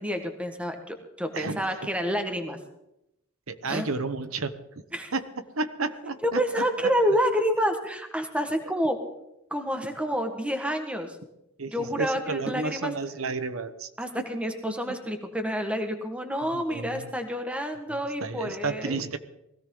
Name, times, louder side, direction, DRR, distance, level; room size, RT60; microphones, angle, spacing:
voice 1, 0.0-2.6 3.7-3.8 4.9-5.1 6.2-9.0 9.5-11.2 11.7-12.9 14.0-19.0, equal, 5° right, 5 dB, 1.6 m, -28 dB
voice 2, 1.3-1.7 3.5-4.5 5.1-5.3 5.6-6.9 11.6-13.9 14.7-15.0 16.4-17.1 18.2-19.2, right 3 dB, 80° right, 10 dB, 1.1 m, -32 dB
20.5 x 16.5 x 3.9 m, 0.85 s
head